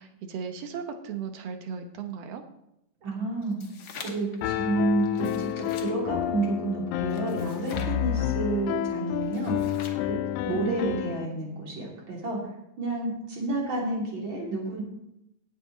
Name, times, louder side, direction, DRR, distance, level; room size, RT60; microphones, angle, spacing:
voice 1, 0.0-2.4 10.5-11.1, right 6 dB, 65° right, 7 dB, 1.8 m, -36 dB
voice 2, 3.0-3.6 4.0-9.5 10.0-12.4 12.8-14.8, right 2 dB, 40° right, -2 dB, 3.5 m, -30 dB
sound 1, 3.4-4.4 5.1-5.9 7.1-8.0 9.2-10.1, left 6 dB, 60° left, 1.4 m, -44 dB
Piano, 4.4-11.3, left 11 dB, 80° left, 2.0 m, -29 dB
17.0 x 7.6 x 4.1 m, 0.83 s
omnidirectional pair, 3.5 m